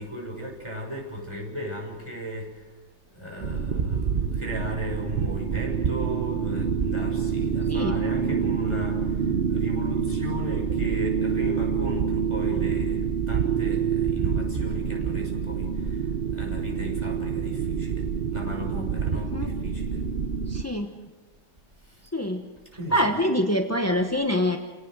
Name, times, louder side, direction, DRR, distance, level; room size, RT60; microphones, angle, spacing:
voice 1, 0.0-2.8 3.1-20.1 21.8-22.1 22.6-23.1, equal, 15° right, -1 dB, 6.3 m, -36 dB
sound 1, 3.4-20.6, right 6 dB, 70° right, 0.5 m, -27 dB
voice 2, 20.5-20.9 22.1-22.4 22.9-24.6, equal, 10° left, 3 dB, 0.7 m, -25 dB
29.5 x 18.5 x 6.3 m, 1.3 s
omnidirectional pair, 2.2 m